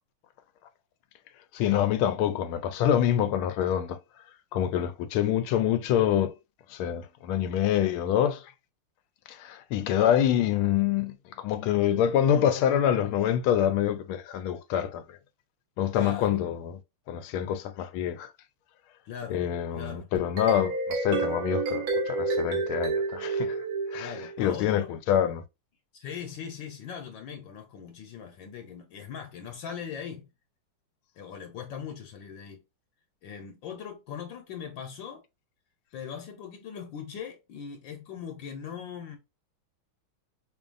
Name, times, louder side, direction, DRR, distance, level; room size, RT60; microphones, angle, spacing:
voice 1, 1.5-4.0 4.5-6.3 6.7-8.4 9.3-15.2 15.8-16.8 17.1-18.3 19.3-23.6 23.9-25.4, left 10 dB, 90° left, 1.5 m, -26 dB
voice 2, 16.0-16.4 19.1-19.4 19.7-20.1 23.9-24.9 25.9-30.3 31.2-32.6 33.2-35.2 35.9-39.2, left 7 dB, 70° left, 1.4 m, -40 dB
sound 1, 20.2-24.5, right 3 dB, 75° right, 1.8 m, -29 dB
5.2 x 2.6 x 2.5 m
omnidirectional pair, 2.2 m